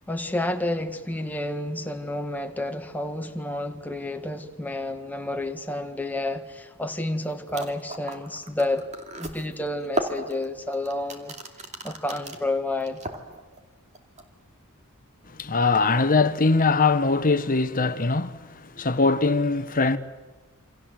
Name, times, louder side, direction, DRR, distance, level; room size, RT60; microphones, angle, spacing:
voice 1, 0.1-8.9 9.2-11.3 11.8-13.0, left 1 dB, 10° left, 1.6 m, -30 dB
sound 1, 7.2-7.3 7.5-12.4 12.8-13.6 13.9-14.2, right 1 dB, 35° right, 2.5 m, -34 dB
voice 2, 15.3-20.0, left 3 dB, 40° left, 1.1 m, -22 dB
28.0 x 26.0 x 7.7 m
head